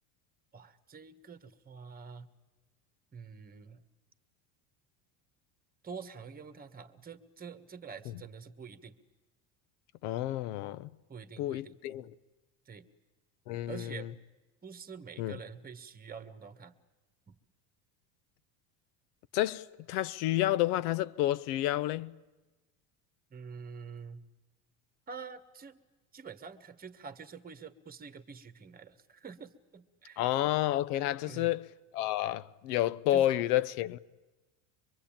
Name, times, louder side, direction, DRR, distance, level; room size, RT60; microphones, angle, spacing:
voice 1, 0.5-2.3 3.1-3.8 5.8-8.9 11.1-11.8 12.6-12.9 13.7-14.1 14.6-16.7 17.3-17.4 23.3-24.2 25.1-25.8 26.1-30.3 31.2-31.5 33.1-33.3, right 6 dB, 20° right, 1.5 m, -47 dB
voice 2, 10.0-10.9 11.4-12.1 13.5-14.1 15.2-15.4 19.3-22.1 30.2-31.7 31.9-34.0, left 14 dB, 85° left, 1.0 m, -30 dB
25.0 x 22.5 x 8.8 m
supercardioid pair, 125°, 45 cm